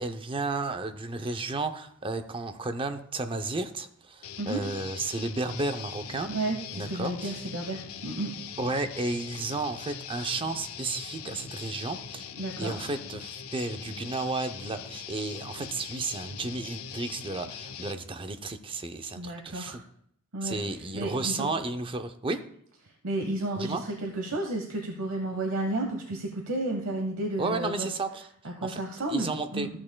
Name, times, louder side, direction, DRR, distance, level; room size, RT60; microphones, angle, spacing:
voice 1, 0.0-6.3 6.7-7.4 8.6-12.3 12.6-19.8 20.4-22.4 23.6-23.8 27.4-28.8 29.1-29.7, right 3 dB, 25° right, 8 dB, 0.5 m, -33 dB
Guitar, 4.2-17.9, left 8 dB, 85° left, 0.6 m, -41 dB
voice 2, 6.3-8.3 12.4-12.8 19.2-19.8 20.3-20.6 20.9-21.5 23.0-27.9 28.4-29.7, right 2 dB, 75° right, 3 dB, 1.0 m, -32 dB
13.5 x 8.6 x 2.2 m, 0.69 s
head